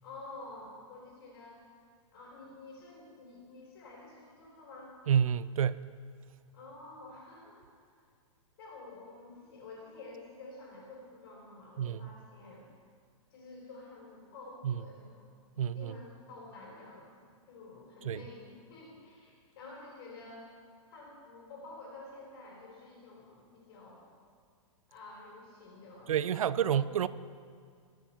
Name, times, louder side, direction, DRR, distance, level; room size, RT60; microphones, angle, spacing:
voice 1, 0.0-1.6 2.1-5.0 6.5-7.9 8.6-12.7 13.3-15.3 15.7-17.1 17.5-20.5 20.9-24.1 24.9-26.8, left 3 dB, 45° left, 4.2 m, -50 dB
voice 2, 5.1-5.8 11.8-12.0 14.6-14.8 15.6-15.9 18.0-18.2 26.1-27.1, right 9 dB, 85° right, 0.6 m, -29 dB
21.5 x 7.3 x 5.8 m
hypercardioid pair, 165°, 17 cm